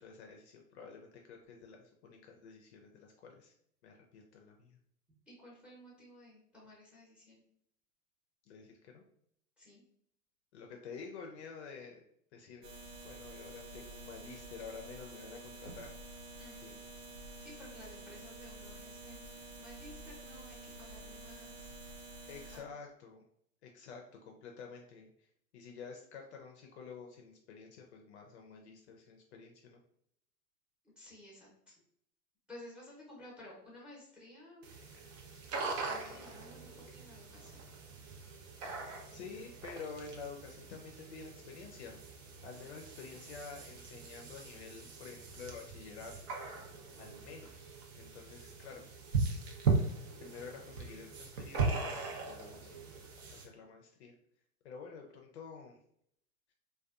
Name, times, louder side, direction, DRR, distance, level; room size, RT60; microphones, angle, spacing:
voice 1, 0.0-3.5 3.8-4.8 8.4-9.0 10.5-12.0 12.3-12.6 13.0-15.9 16.6-16.8 22.3-23.2 23.6-25.3 25.5-29.8 39.1-42.0 42.4-46.1 47.0-48.8 49.3-49.5 50.2-52.9 53.3-54.1 54.6-55.8, left 5 dB, 50° left, 2 dB, 0.5 m, -50 dB
voice 2, 5.3-7.5 9.6-9.8 16.4-16.6 17.1-22.0 22.5-22.7 31.0-31.7 32.5-34.6 35.9-37.7, left 1 dB, ahead, -3 dB, 0.7 m, -54 dB
sound 1, 12.6-22.6, right 2 dB, 85° right, 1.1 m, -49 dB
sound 2, 34.6-53.5, right 4 dB, 55° right, 0.7 m, -39 dB
2.5 x 2.3 x 2.3 m, 0.70 s
hypercardioid pair, 125°, 44 cm